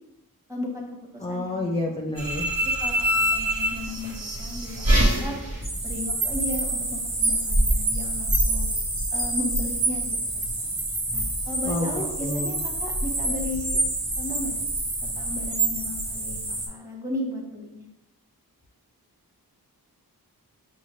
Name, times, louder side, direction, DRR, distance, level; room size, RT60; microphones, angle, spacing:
voice 1, 0.5-1.7 2.3-5.3 5.8-8.7 9.1-10.7 11.1-13.8 14.2-14.6 15.0-17.8, left 2 dB, 10° right, -1 dB, 0.9 m, -35 dB
voice 2, 1.2-2.5 11.6-11.9 12.2-12.6, left 1 dB, 15° left, 0 dB, 0.4 m, -29 dB
sound 1, 2.2-16.7, right 1 dB, 65° right, 1.1 m, -26 dB
5.7 x 2.2 x 3.1 m, 0.87 s
wide cardioid pair, 80°, 37 cm